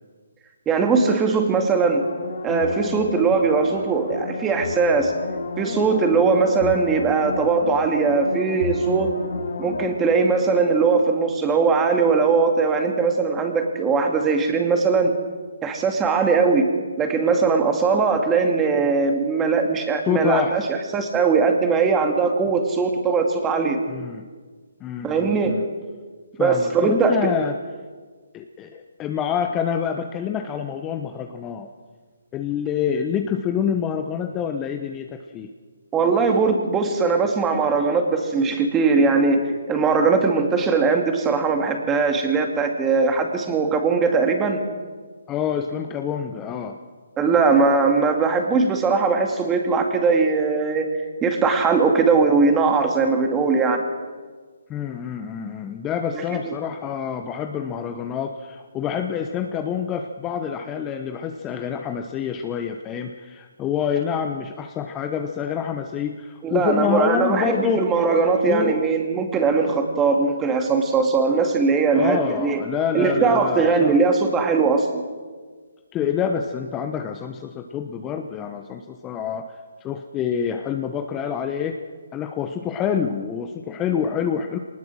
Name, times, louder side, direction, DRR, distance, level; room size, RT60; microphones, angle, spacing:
voice 1, 0.7-2.0 2.4-5.1 5.6-9.1 9.6-15.1 15.6-16.7 17.0-23.8 25.0-25.6 26.4-27.3 35.9-44.6 47.2-53.8 56.4-56.5 66.4-72.6 72.9-75.0, right 4 dB, 15° right, 4 dB, 2.3 m, -20 dB
sound 1, 1.9-11.2 11.6-11.7, left 3 dB, 65° left, 4.4 m, -31 dB
voice 2, 20.0-20.5 23.9-24.2 24.8-25.6 26.4-27.5 28.3-31.7 32.3-35.5 45.3-46.8 54.7-67.8 68.5-68.8 71.9-74.0 75.9-81.8 82.1-84.6, left 8 dB, 20° left, 5 dB, 0.9 m, -27 dB
22.5 x 19.5 x 6.3 m, 1.5 s
figure-of-eight pair, 145°, 0 cm